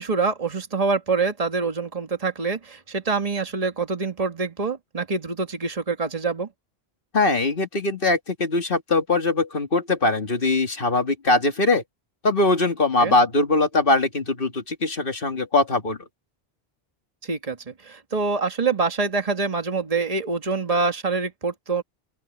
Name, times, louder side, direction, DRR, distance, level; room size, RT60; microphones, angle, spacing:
voice 1, 0.0-6.5 13.0-13.1 17.2-21.8, right 4 dB, 35° right, 1.8 m, -25 dB
voice 2, 7.1-11.8 12.2-16.0, left 2 dB, 60° left, 2.2 m, -21 dB
open air
omnidirectional pair, 1.1 m